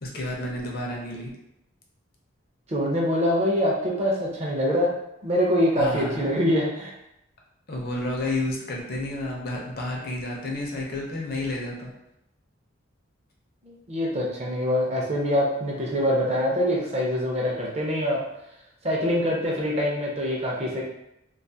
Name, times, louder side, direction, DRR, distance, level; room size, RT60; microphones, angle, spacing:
voice 1, 0.0-1.3 5.8-6.4 7.7-11.9, left 1 dB, 50° left, -2 dB, 0.5 m, -31 dB
voice 2, 2.7-4.9 5.2-6.9 13.6-18.2 18.8-20.8, equal, 30° right, -3 dB, 0.5 m, -24 dB
2.4 x 2.3 x 2.7 m, 0.82 s
head